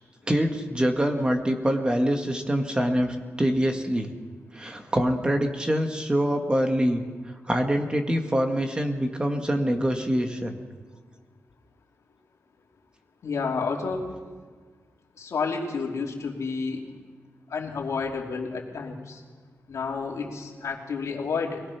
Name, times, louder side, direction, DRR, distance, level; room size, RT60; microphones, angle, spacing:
voice 1, 0.3-4.1 4.5-7.1 7.4-10.6, equal, 20° right, 4 dB, 1.8 m, -25 dB
voice 2, 13.2-14.0 15.2-16.8 17.5-19.2 19.7-21.6, left 5 dB, 80° left, 0 dB, 3.0 m, -30 dB
23.5 x 18.5 x 5.9 m, 1.5 s
wide cardioid pair, 105°, 5 cm